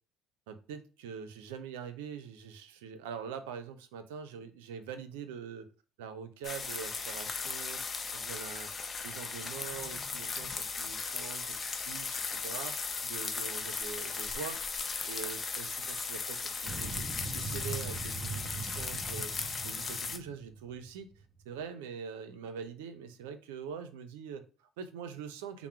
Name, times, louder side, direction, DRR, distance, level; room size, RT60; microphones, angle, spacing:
voice 1, 0.5-5.7 6.0-7.8 8.1-8.7 9.0-17.0 17.3-19.3 19.6-25.7, right 7 dB, 90° right, 10 dB, 0.4 m, -44 dB
sound 1, 6.4-20.2, left 4 dB, 35° left, 0.5 m, -37 dB
sound 2, 16.7-21.4, right 3 dB, 10° right, 1.2 m, -41 dB
3.5 x 2.0 x 4.2 m, 0.35 s
supercardioid pair, 70°, 0 cm